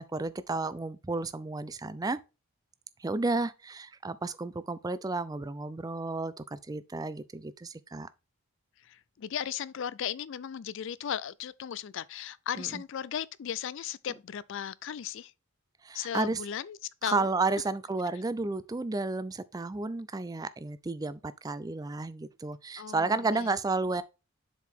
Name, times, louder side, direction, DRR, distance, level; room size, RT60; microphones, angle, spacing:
voice 1, 0.0-2.2 3.0-8.1 12.6-12.8 15.8-16.4 17.0-24.0, right 3 dB, 15° right, 0.3 m, -32 dB
voice 2, 8.8-15.3 15.9-17.3 22.8-23.5, left 9 dB, 60° left, 0.4 m, -36 dB
7.0 x 4.7 x 3.6 m
head